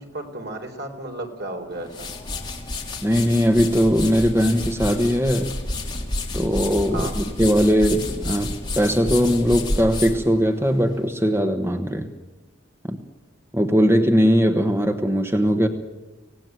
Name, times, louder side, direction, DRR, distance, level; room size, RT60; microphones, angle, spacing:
voice 1, 0.0-2.1 6.9-7.1, right 2 dB, 60° right, 4 dB, 3.9 m, -33 dB
sound 1, 1.7-11.1, left 2 dB, 25° left, 3.1 m, -30 dB
voice 2, 3.0-5.5 6.3-12.1 12.9-13.0 13.5-15.7, equal, 15° right, 6 dB, 1.3 m, -20 dB
25.0 x 18.0 x 9.2 m, 1.2 s
head